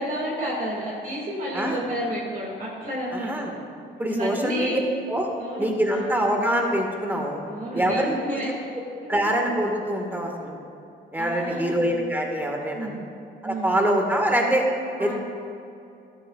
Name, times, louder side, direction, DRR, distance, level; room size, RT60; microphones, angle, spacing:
voice 1, 0.0-3.3 4.1-4.8 5.4-6.2 7.5-8.5 11.2-11.8 12.7-13.0 13.4-13.7 15.0-15.1, right 1 dB, 45° right, -4 dB, 2.5 m, -31 dB
voice 2, 1.5-1.9 3.1-3.5 4.0-4.8 5.1-5.3 5.6-7.4 7.7-8.4 8.7-8.8 9.1-10.5 11.1-12.9 13.4-14.7 15.0-15.1, right 1 dB, 10° right, 1 dB, 1.9 m, -24 dB
13.5 x 12.0 x 2.5 m, 2.7 s
cardioid pair, 90°, 20 cm